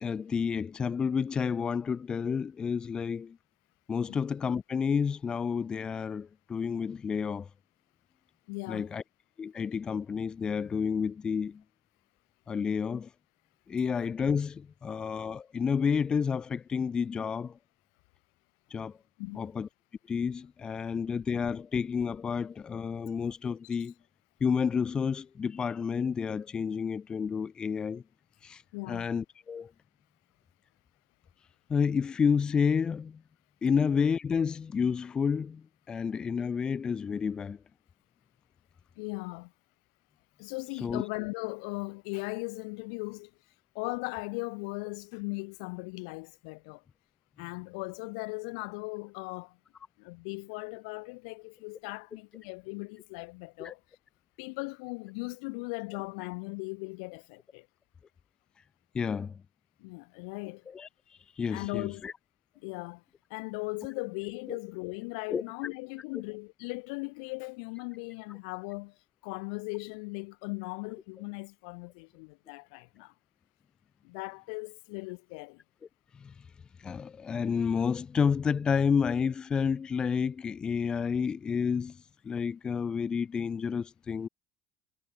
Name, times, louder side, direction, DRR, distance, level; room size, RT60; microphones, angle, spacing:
voice 1, 0.0-3.4 3.9-7.5 8.7-9.0 9.4-11.6 12.5-13.1 13.7-17.5 18.7-18.9 19.4-19.7 20.1-23.9 24.4-28.0 28.4-28.6 28.9-29.7 31.7-33.2 33.6-37.6 40.8-41.0 53.6-53.7 58.9-59.3 60.7-60.9 61.4-62.1 65.3-65.4 76.2-76.3 76.8-82.0 82.2-84.3, left 6 dB, 25° left, 0.3 m, -30 dB
voice 2, 8.5-8.9 19.2-19.5 28.7-29.1 39.0-39.5 40.4-43.3 43.8-46.8 47.4-49.6 50.0-53.8 54.4-57.7 59.8-60.7 61.5-62.0 62.6-63.0 63.3-69.0 69.2-73.1 74.0-75.6, left 32 dB, 85° left, 1.7 m, -38 dB
cardioid pair, 120°, 3 cm